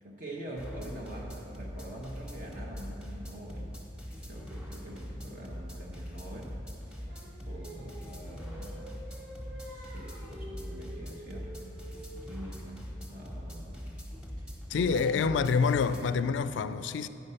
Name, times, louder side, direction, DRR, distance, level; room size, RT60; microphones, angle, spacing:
voice 1, 0.0-3.8 4.2-6.5 6.9-7.1 7.4-9.0 9.6-11.9 12.2-13.8 14.4-15.3, right 1 dB, 45° right, 0.9 m, -45 dB
sound 1, 0.6-16.2, equal, 5° right, 1.1 m, -42 dB
Singing, 7.1-12.3, right 1 dB, 75° right, 2.2 m, -48 dB
voice 2, 14.7-17.1, left 5 dB, 90° left, 0.3 m, -27 dB
9.1 x 5.3 x 5.5 m
head